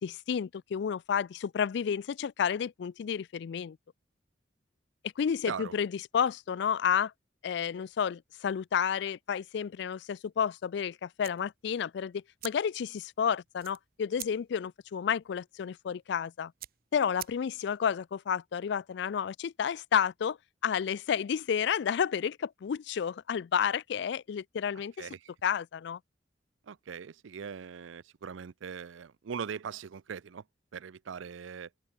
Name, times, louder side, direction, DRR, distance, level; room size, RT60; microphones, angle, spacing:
voice 1, 0.0-3.8 5.2-7.1 7.4-16.5 16.9-20.4 20.6-25.1 25.4-26.0, left 7 dB, 60° left, 0.3 m, -31 dB
sound 1, 11.2-17.8, right 15 dB, 50° right, 0.7 m, -49 dB
voice 2, 25.0-25.3 26.7-30.4 30.7-31.7, right 6 dB, 85° right, 0.5 m, -40 dB
open air
head